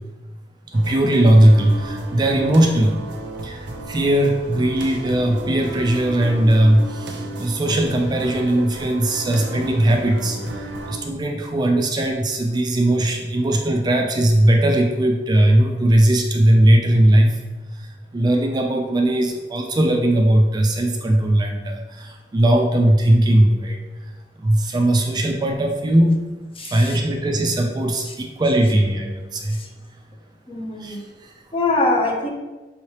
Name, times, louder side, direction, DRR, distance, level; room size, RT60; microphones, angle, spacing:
voice 1, 0.7-3.0 3.4-17.4 17.7-24.1 24.4-26.2 26.6-29.6 30.8-31.3, right 1 dB, 25° right, 2 dB, 0.3 m, -18 dB
sound 1, 0.7-11.0, right 1 dB, 70° right, 0.6 m, -33 dB
voice 2, 26.6-27.0 29.5-29.7 30.5-31.0 31.5-32.3, left 2 dB, 30° left, 1 dB, 0.7 m, -23 dB
5.4 x 3.2 x 2.8 m, 1.2 s
head